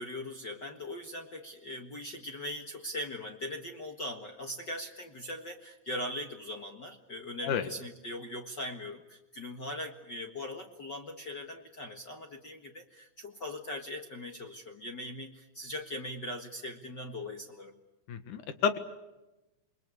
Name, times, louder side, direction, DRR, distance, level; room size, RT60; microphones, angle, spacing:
voice 1, 0.0-17.8, left 1 dB, 40° left, 4 dB, 2.0 m, -40 dB
voice 2, 18.1-18.8, left 7 dB, 85° left, 10 dB, 3.2 m, -30 dB
29.0 x 22.5 x 8.4 m, 1.0 s
omnidirectional pair, 3.5 m